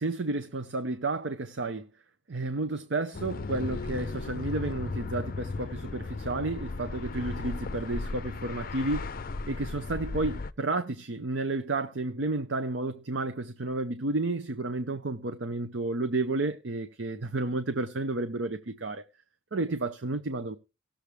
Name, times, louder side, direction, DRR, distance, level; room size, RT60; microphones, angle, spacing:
voice 1, 0.0-1.9 2.3-9.2 9.5-19.0 19.5-20.6, right 2 dB, 70° right, 0.7 m, -31 dB
sound 1, 3.1-10.5, left 3 dB, 50° left, 0.5 m, -36 dB
18.0 x 7.2 x 3.3 m
head